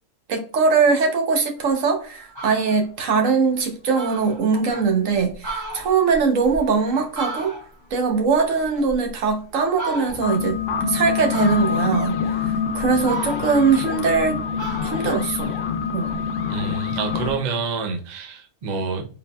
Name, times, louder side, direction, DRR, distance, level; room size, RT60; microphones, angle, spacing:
voice 1, 0.3-7.5 7.9-10.6 10.9-12.2 12.7-14.4 14.8-15.5 15.9-16.1, right 5 dB, 65° right, 1.1 m, -21 dB
Fowl, 1.8-1.9 2.2-2.8 3.3-3.4 3.6-3.7 3.9-4.8 5.3-7.9 8.3-9.3 9.7-10.4 11.3-12.0 12.5-14.3 14.6-16.2, right 2 dB, 15° right, 1.4 m, -35 dB
sound 1, 10.1-17.3, left 7 dB, 70° left, 0.9 m, -26 dB
voice 2, 16.5-19.0, right 5 dB, 45° right, 0.6 m, -27 dB
4.0 x 3.6 x 2.2 m
omnidirectional pair, 1.5 m